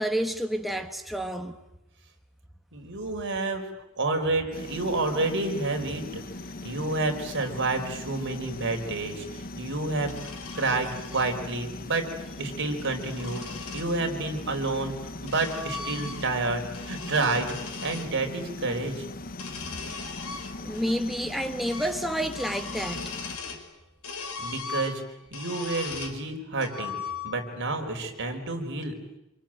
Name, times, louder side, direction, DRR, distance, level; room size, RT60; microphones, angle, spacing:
voice 1, 0.0-1.6 20.6-23.1, equal, ahead, 1.3 m, -29 dB
voice 2, 2.7-3.6 4.0-6.2 6.5-10.1 10.5-12.0 12.4-13.5 13.7-14.9 15.2-17.6 17.8-19.1 24.4-25.0 25.3-27.0 27.2-28.9, right 2 dB, 55° right, 4.7 m, -29 dB
sound 1, 4.5-23.4, left 2 dB, 40° left, 1.1 m, -40 dB
sound 2, 10.0-11.3 12.6-13.9 14.8-16.4 16.7-18.1 19.3-20.9 21.2-21.3 21.7-22.0 22.3-23.7 24.0-26.2 26.6-27.6, left 5 dB, 90° left, 4.9 m, -39 dB
27.5 x 23.5 x 9.1 m
head